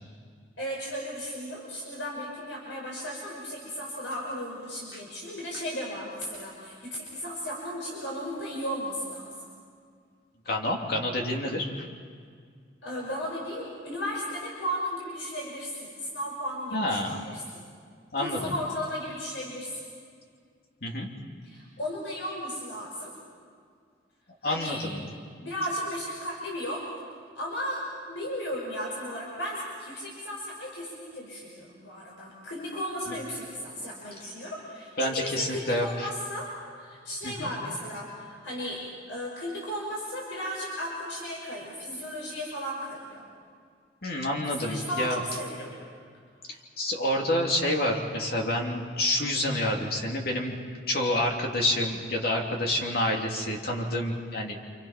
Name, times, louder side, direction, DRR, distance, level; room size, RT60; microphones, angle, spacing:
voice 1, 0.6-9.3 12.8-17.6 18.2-19.8 21.4-23.1 24.4-24.8 25.4-26.8 27.4-36.5 36.7-38.8 39.1-43.2 44.5-45.7, equal, 85° left, -3 dB, 5.8 m, -35 dB
voice 2, 10.5-11.7 16.7-17.2 18.1-18.6 20.8-21.1 24.4-25.0 33.1-33.2 35.0-36.1 37.2-37.5 44.0-45.2 46.5-50.6 50.9-54.6, left 1 dB, 55° left, 0 dB, 3.0 m, -28 dB
29.5 x 28.0 x 5.9 m, 2.1 s
head